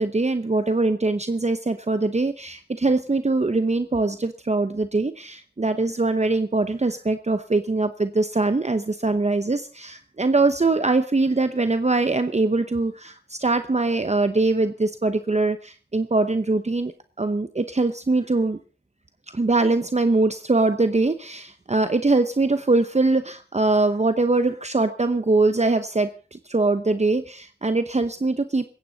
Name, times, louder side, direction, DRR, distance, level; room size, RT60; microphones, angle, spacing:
voice 1, 0.0-16.9 17.2-18.6 19.3-28.7, right 3 dB, 40° right, 10 dB, 0.9 m, -22 dB
18.5 x 15.5 x 4.0 m, 0.39 s
wide cardioid pair, 50°, 18 cm